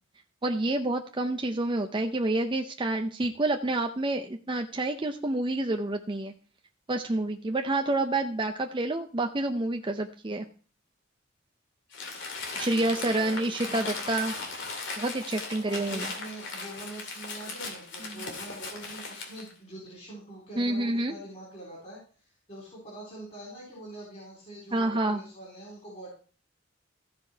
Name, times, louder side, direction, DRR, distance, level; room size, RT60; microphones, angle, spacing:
voice 1, 0.4-6.3 6.9-10.4 12.5-14.3 15.0-16.1 18.1-18.2 20.6-21.1 24.7-25.2, right 2 dB, 25° right, 4 dB, 0.6 m, -28 dB
Crumpling crinkling, 11.9-19.5, left 3 dB, 65° left, 2.5 m, -38 dB
voice 2, 12.7-13.9 15.6-22.0 22.5-26.1, right 1 dB, 35° left, -4 dB, 4.1 m, -44 dB
15.0 x 5.2 x 4.5 m, 0.40 s
head